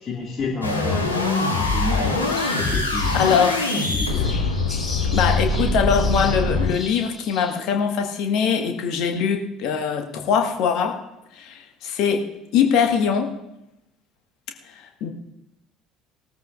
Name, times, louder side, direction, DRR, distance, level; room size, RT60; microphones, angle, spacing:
voice 1, 0.0-2.2 2.5-3.3 3.7-4.3, left 3 dB, 35° left, -1 dB, 2.1 m, -31 dB
sound 1, 0.6-6.7, left 3 dB, 85° left, 1.7 m, -23 dB
sound 2, 2.2-7.5, left 3 dB, 20° left, 5.0 m, -37 dB
voice 2, 3.1-3.7 5.1-11.0 11.3-12.2 12.5-13.3 14.7-15.1, left 7 dB, 55° left, 4 dB, 1.5 m, -22 dB
19.5 x 13.5 x 2.5 m, 0.87 s
figure-of-eight pair, 60°, 0 cm